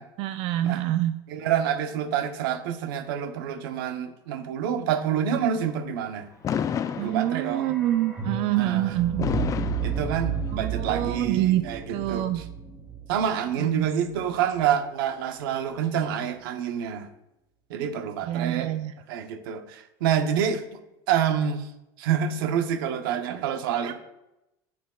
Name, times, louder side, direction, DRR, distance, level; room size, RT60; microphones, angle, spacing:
voice 1, 0.2-1.1 6.9-9.3 10.5-11.6 11.9-12.4 13.6-13.9 18.2-18.9 23.8-23.9, right 14 dB, 55° right, 10 dB, 0.4 m, -26 dB
voice 2, 1.3-6.3 7.0-7.8 8.6-8.9 9.8-12.2 13.1-17.1 17.7-18.7 19.1-20.6 21.1-21.7 22.0-24.0, right 8 dB, 85° right, 8 dB, 0.8 m, -27 dB
Fireworks, 6.4-7.8 9.2-10.7, left 8 dB, 30° left, 0.4 m, -30 dB
sound 1, 6.6-14.6 14.9-15.0, right 5 dB, 10° right, 2.4 m, -33 dB
9.2 x 7.6 x 2.4 m, 0.91 s
supercardioid pair, 120°, 11 cm